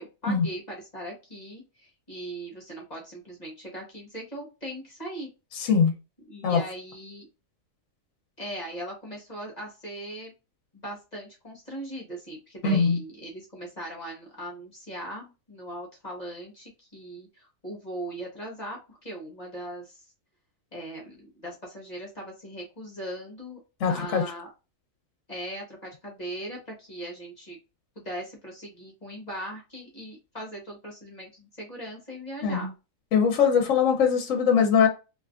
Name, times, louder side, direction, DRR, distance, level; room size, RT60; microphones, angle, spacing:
voice 1, 0.0-5.3 6.3-7.3 8.4-10.3 10.8-20.1 20.7-23.6 23.9-24.5 25.3-27.6 27.9-32.7, right 1 dB, 35° left, 1.3 m, -39 dB
voice 2, 5.6-5.9 6.4-6.6 12.6-13.0 23.8-24.2 32.4-32.7 33.1-34.9, left 6 dB, 70° left, 1.1 m, -21 dB
3.3 x 2.9 x 2.4 m
omnidirectional pair, 1.4 m